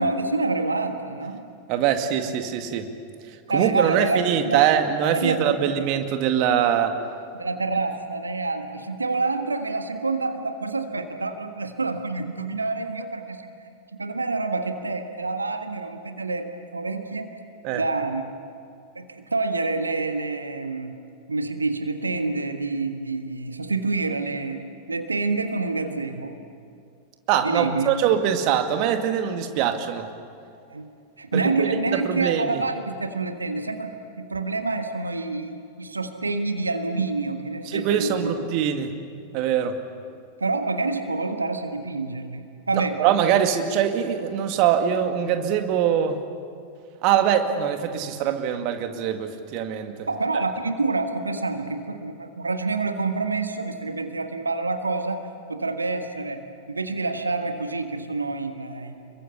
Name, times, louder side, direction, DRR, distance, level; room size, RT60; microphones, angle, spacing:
voice 1, 0.0-1.5 3.5-4.7 5.1-5.6 7.3-13.5 14.0-17.5 17.7-18.2 18.9-21.0 21.3-24.6 24.9-26.4 27.4-28.0 30.7-30.9 31.2-33.9 34.2-38.4 40.4-43.0 50.1-55.2 55.5-59.0, right 3 dB, 80° right, 7 dB, 1.5 m, -27 dB
voice 2, 1.7-2.9 3.5-7.0 17.6-17.8 27.3-30.1 31.3-32.6 37.7-38.9 39.3-39.8 42.7-46.2 47.0-50.1, right 9 dB, 45° right, 6 dB, 2.1 m, -23 dB
26.5 x 23.0 x 8.5 m, 2.4 s
figure-of-eight pair, 90°, 0 cm